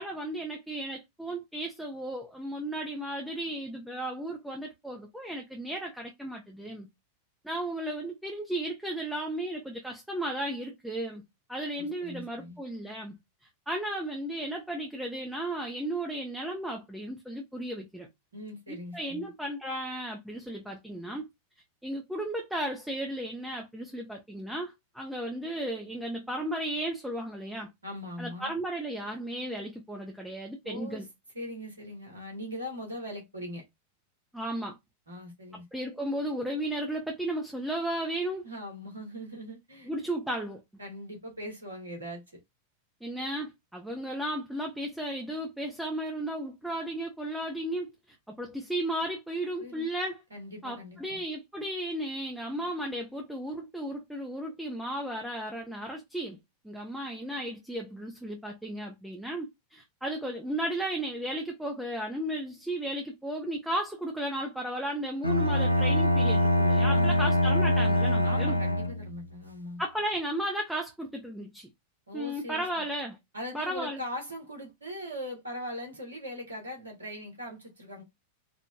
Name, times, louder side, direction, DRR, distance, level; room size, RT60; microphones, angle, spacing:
voice 1, 0.0-6.9 7.4-11.2 11.5-13.2 13.7-18.1 18.9-21.3 21.8-27.7 28.2-31.1 34.3-34.8 35.7-38.4 39.9-40.6 43.0-47.9 48.4-50.2 50.6-56.4 56.6-68.6 69.8-71.7 72.1-73.2 73.5-74.0, right 1 dB, ahead, 0.8 m, -34 dB
voice 2, 11.8-12.6 18.3-19.3 27.8-28.5 30.6-31.1 31.3-33.6 35.1-35.6 38.4-39.9 40.8-42.4 49.6-49.9 50.3-51.2 66.9-67.5 68.2-69.8 72.1-72.6 73.3-78.0, equal, 75° right, 1.5 m, -40 dB
Bowed string instrument, 65.2-69.2, left 1 dB, 90° left, 0.4 m, -24 dB
4.6 x 2.5 x 2.3 m
figure-of-eight pair, 90°, 0 cm